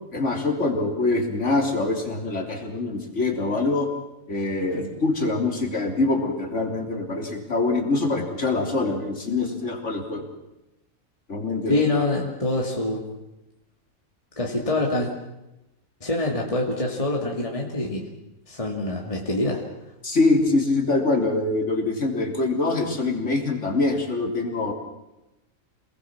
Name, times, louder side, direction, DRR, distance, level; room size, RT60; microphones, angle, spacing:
voice 1, 0.1-3.9 4.3-10.3 11.3-11.8 20.0-24.7, left 3 dB, 55° left, 3 dB, 3.8 m, -24 dB
voice 2, 11.7-13.0 14.4-15.1 16.0-18.0 18.5-19.6, left 2 dB, 25° left, -1 dB, 2.6 m, -25 dB
27.5 x 20.0 x 7.5 m, 0.96 s
omnidirectional pair, 1.4 m